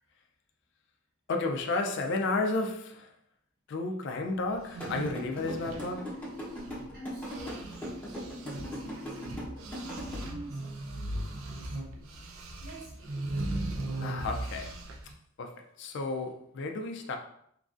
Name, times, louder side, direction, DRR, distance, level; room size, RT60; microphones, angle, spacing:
voice 1, 1.3-3.1 3.7-6.1 14.0-14.7 15.4-17.2, left 3 dB, 60° left, 0.3 m, -32 dB
sound 1, 4.6-6.9 7.2-15.1, right 2 dB, 80° right, 0.4 m, -38 dB
sound 2, 4.8-10.1, equal, 10° left, 0.8 m, -38 dB
voice 2, 6.9-12.2 12.6-13.3, equal, 50° right, 1.2 m, -48 dB
3.0 x 2.4 x 2.5 m
head